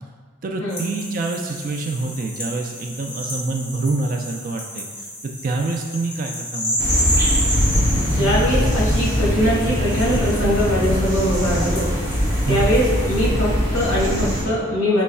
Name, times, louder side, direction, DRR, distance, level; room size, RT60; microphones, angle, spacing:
voice 1, 0.4-4.9 5.4-6.8 12.4-12.7, right 3 dB, 40° right, 3 dB, 0.3 m, -26 dB
sound 1, 0.7-13.3, equal, 20° left, 0.8 m, -30 dB
sound 2, 6.8-14.4, equal, 15° right, 0.8 m, -21 dB
voice 2, 7.9-11.9 12.5-15.0, equal, 75° left, -6 dB, 1.5 m, -21 dB
5.3 x 3.1 x 2.3 m, 1.5 s
head